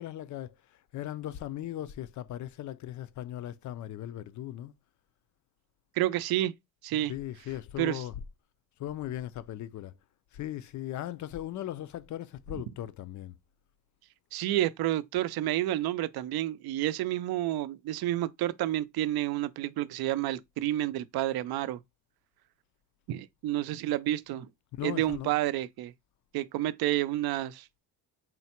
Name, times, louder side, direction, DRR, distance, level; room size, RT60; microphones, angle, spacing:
voice 1, 0.0-4.7 7.1-8.2 8.8-9.9 10.3-13.3 24.8-25.4, left 13 dB, 50° left, 0.5 m, -38 dB
voice 2, 6.0-6.5 6.8-7.1 7.8-8.0 14.3-21.8 23.1-24.5 24.8-25.9 26.3-27.7, right 14 dB, 65° right, 0.5 m, -30 dB
3.8 x 2.1 x 4.3 m
cardioid pair, 120°, 40 cm